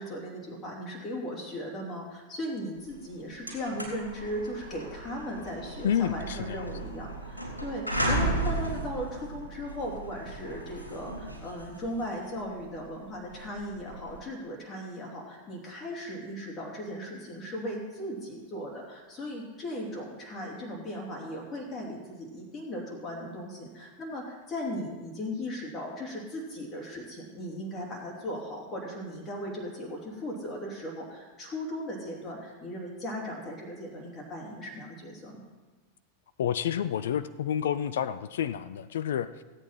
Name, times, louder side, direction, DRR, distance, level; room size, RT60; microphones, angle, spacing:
voice 1, 0.0-35.5, equal, 25° left, -4 dB, 3.0 m, -37 dB
sound 1, 2.9-3.0 3.3-14.2, right 1 dB, 85° left, 2.9 m, -35 dB
voice 2, 5.8-6.7 36.4-39.4, left 9 dB, 60° left, 15 dB, 0.5 m, -29 dB
17.0 x 8.6 x 4.3 m, 1.2 s
figure-of-eight pair, 90°, 0 cm